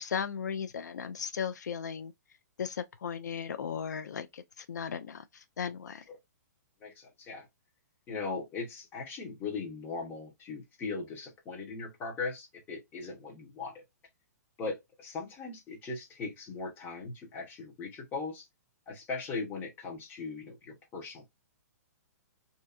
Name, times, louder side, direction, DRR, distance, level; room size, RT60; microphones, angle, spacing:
voice 1, 0.0-2.1 2.6-6.0, left 7 dB, 90° left, 0.3 m, -36 dB
voice 2, 6.8-7.5 8.1-13.8 14.6-18.5 18.9-21.3, left 4 dB, 20° left, 0.9 m, -39 dB
2.6 x 2.3 x 2.3 m
hypercardioid pair, 140°, 9 cm